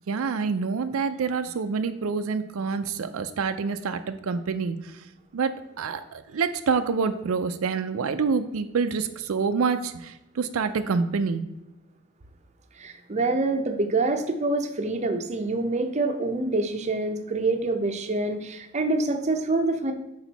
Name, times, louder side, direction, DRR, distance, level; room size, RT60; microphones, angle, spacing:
voice 1, 0.1-4.8 5.3-11.4, right 5 dB, 85° right, 9 dB, 0.4 m, -27 dB
voice 2, 12.8-19.9, right 2 dB, 35° right, 6 dB, 0.6 m, -26 dB
6.2 x 4.8 x 4.0 m, 0.92 s
head